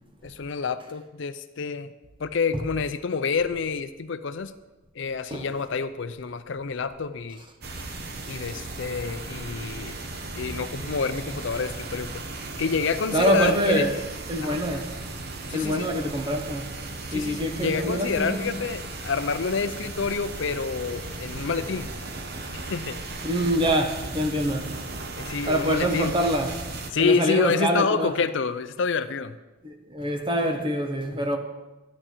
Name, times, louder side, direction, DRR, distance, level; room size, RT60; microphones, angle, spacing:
voice 1, 0.2-1.9 2.2-4.5 4.9-7.4 8.3-10.0 10.4-12.2 12.6-13.9 14.4-14.6 15.5-15.9 17.1-21.9 22.5-23.0 25.2-26.1 26.9-29.4, left 5 dB, 60° left, 0.5 m, -28 dB
sound 1, 7.6-26.9, right 2 dB, 50° right, 1.0 m, -36 dB
voice 2, 13.1-13.9 14.3-14.9 15.5-16.7 17.1-18.6 23.2-24.8 25.5-26.6 27.0-28.1 29.6-31.4, right 1 dB, 25° right, 1.1 m, -25 dB
12.5 x 9.9 x 4.5 m
head